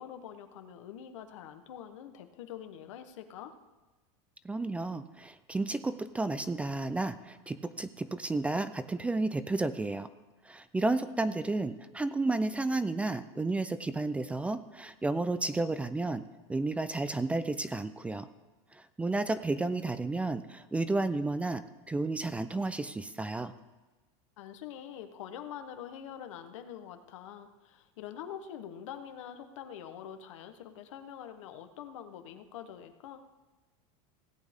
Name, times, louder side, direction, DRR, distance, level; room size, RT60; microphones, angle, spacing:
voice 1, 0.0-3.6 24.4-33.2, left 9 dB, 90° left, 8 dB, 1.1 m, -45 dB
voice 2, 4.4-10.1 10.5-16.2 16.5-18.3 18.7-23.5, right 2 dB, 10° right, 13 dB, 0.4 m, -32 dB
16.5 x 8.5 x 3.6 m, 1.2 s
supercardioid pair, 140°, 16 cm